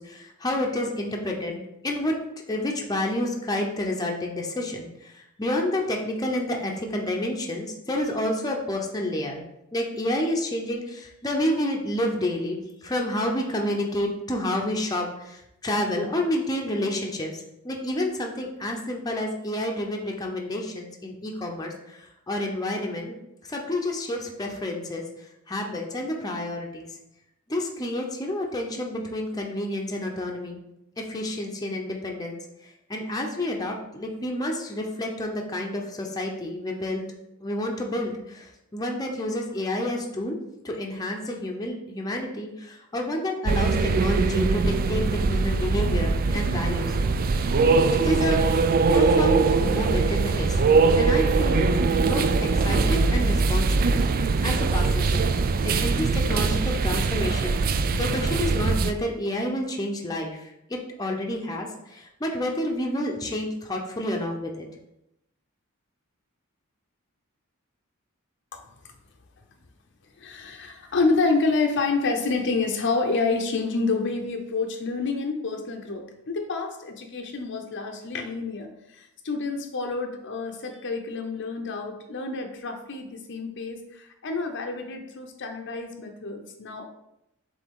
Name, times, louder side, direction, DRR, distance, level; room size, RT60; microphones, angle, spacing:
voice 1, 0.0-2.2 2.5-9.4 9.7-23.2 23.5-25.0 25.5-26.9 27.5-30.6 31.0-32.4 32.9-37.0 37.4-40.4 40.6-47.0 47.9-52.3 52.6-64.7, left 1 dB, 15° left, 0 dB, 0.8 m, -29 dB
sound 1, 43.4-58.9, right 4 dB, 40° right, 0.4 m, -22 dB
voice 2, 70.2-86.8, left 3 dB, 55° left, 4 dB, 0.7 m, -28 dB
7.7 x 3.4 x 3.7 m, 0.84 s
head